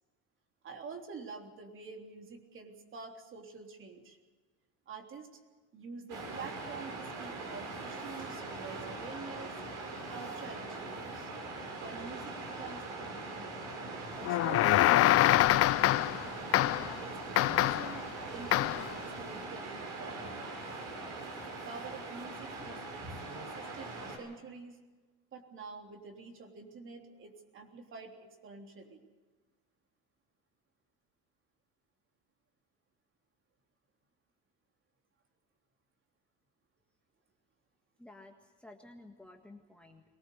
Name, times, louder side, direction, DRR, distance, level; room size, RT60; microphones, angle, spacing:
voice 1, 0.6-4.2 4.9-5.4 5.7-9.6 10.1-11.3 11.8-13.6 14.1-16.2 17.0-20.5 21.5-24.8 25.3-29.0, right 4 dB, 40° right, 3 dB, 3.5 m, -47 dB
Waves surf, 6.1-24.2, right 2 dB, 70° right, 6.8 m, -42 dB
sound 1, 14.3-16.2 16.5-17.0 17.4-18.0 18.5-18.9, left 15 dB, 45° left, 0.6 m, -25 dB
voice 2, 38.0-40.0, left 2 dB, 5° left, 1 dB, 1.7 m, -53 dB
23.0 x 19.0 x 6.8 m, 1.3 s
cardioid pair, 130°, 32 cm